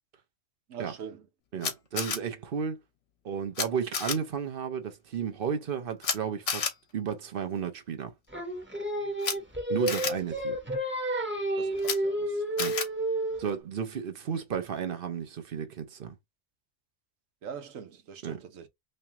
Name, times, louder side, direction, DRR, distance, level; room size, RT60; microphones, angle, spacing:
voice 1, 0.7-1.3 1.5-1.6 11.6-12.7 17.4-18.7, right 7 dB, 85° right, 1.3 m, -43 dB
voice 2, 1.5-2.8 3.2-8.1 9.7-10.6 12.6-12.8 13.4-16.2 18.2-18.4, right 7 dB, 50° right, 0.9 m, -33 dB
Camera, 1.6-2.2 3.5-3.6 3.9-4.1 6.0-6.2 6.5-6.7 9.2-9.3 9.9-10.1 11.8-12.0 12.6-12.9, left 6 dB, 70° left, 1.3 m, -30 dB
Singing, 8.3-13.5, right 1 dB, 10° right, 0.9 m, -30 dB
3.4 x 3.2 x 2.9 m
omnidirectional pair, 1.3 m